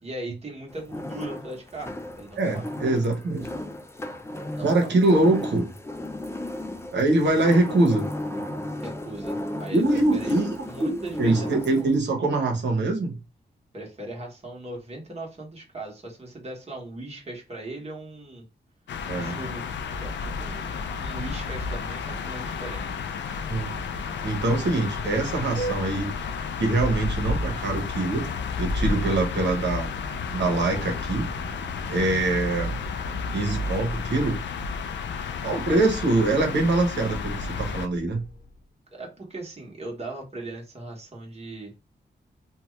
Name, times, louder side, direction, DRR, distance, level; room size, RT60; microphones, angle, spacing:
voice 1, 0.0-2.7 4.5-5.0 8.8-10.4 10.6-11.9 13.7-18.4 19.1-19.6 20.0-23.0 35.4-35.9 38.9-41.7, right 2 dB, 35° right, 1.2 m, -39 dB
sound 1, 0.7-11.9, left 1 dB, 15° left, 0.4 m, -35 dB
voice 2, 2.4-3.5 4.6-5.7 6.9-8.1 9.7-13.1 19.1-19.4 23.5-23.7 24.2-26.1 26.6-28.3 28.6-31.3 31.9-32.7 33.3-34.4 35.4-38.2, right 2 dB, 75° right, 1.0 m, -23 dB
sound 2, 18.9-37.9, left 5 dB, 90° left, 0.4 m, -32 dB
Vehicle horn car horn honking, 23.3-38.6, equal, 65° left, 0.8 m, -37 dB
2.7 x 2.3 x 3.1 m
wide cardioid pair, 90°, 18 cm